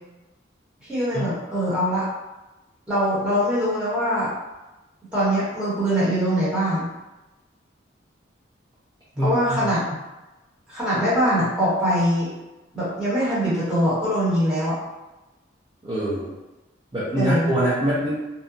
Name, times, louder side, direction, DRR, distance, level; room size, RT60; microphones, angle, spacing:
voice 1, 0.9-2.1 2.9-4.3 5.1-6.9 9.2-9.9 10.7-12.3 12.7-14.8 17.2-17.5, equal, 5° right, -11 dB, 1.1 m, -22 dB
voice 2, 9.2-9.7 15.8-16.3 16.9-18.1, equal, 25° right, -11 dB, 0.6 m, -24 dB
2.8 x 2.3 x 2.5 m, 1.1 s
head